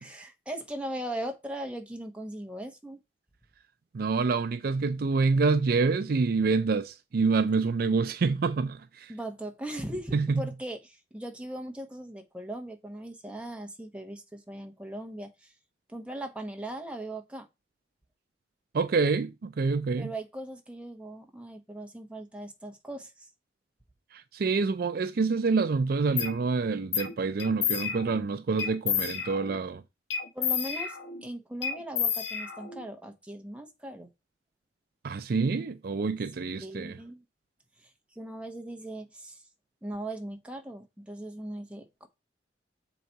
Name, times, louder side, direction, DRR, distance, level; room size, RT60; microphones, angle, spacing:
voice 1, 0.0-3.0 9.1-15.5 15.9-17.5 20.0-23.1 30.3-34.1 36.6-37.2 37.8-37.9 38.1-39.4 39.8-42.1, right 1 dB, 5° right, 1.1 m, -39 dB
voice 2, 3.9-9.1 10.1-10.4 18.7-20.1 24.1-29.8 35.0-37.0, right 4 dB, 55° right, 0.4 m, -27 dB
sound 1, 26.2-26.3 26.9-27.1 27.4-28.2 28.6-29.6 30.1-31.2 31.6-32.9, left 7 dB, 75° left, 1.2 m, -31 dB
7.5 x 4.1 x 4.6 m
head